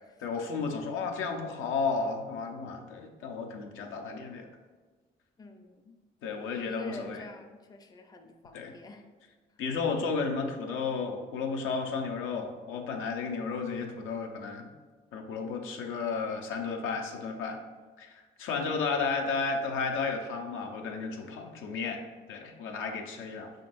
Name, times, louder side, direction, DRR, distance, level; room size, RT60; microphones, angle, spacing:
voice 1, 0.2-4.5 6.2-7.2 8.5-8.7 9.6-14.7 15.1-17.6 18.0-18.1 18.4-23.5, left 4 dB, 90° left, 3 dB, 0.6 m, -33 dB
voice 2, 5.4-5.9 6.3-9.0, left 2 dB, 20° left, 6 dB, 0.4 m, -47 dB
5.1 x 3.8 x 2.5 m, 1.4 s
cardioid pair, 90°, 20 cm